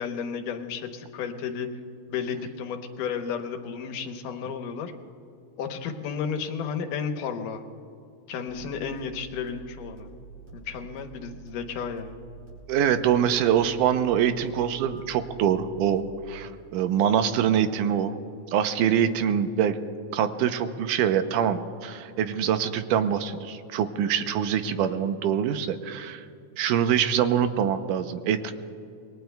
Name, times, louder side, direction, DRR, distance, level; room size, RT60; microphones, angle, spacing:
voice 1, 0.0-1.7 2.1-4.9 5.6-7.6 8.3-10.1 10.5-12.2, left 6 dB, 85° left, 5 dB, 2.6 m, -33 dB
sound 1, 8.5-16.5, right 5 dB, 45° right, 6.0 m, -47 dB
voice 2, 12.7-18.1 18.5-19.8 20.1-26.2 26.6-28.5, right 9 dB, 85° right, 9 dB, 2.2 m, -24 dB
27.0 x 21.5 x 2.3 m, 2.5 s
omnidirectional pair, 3.7 m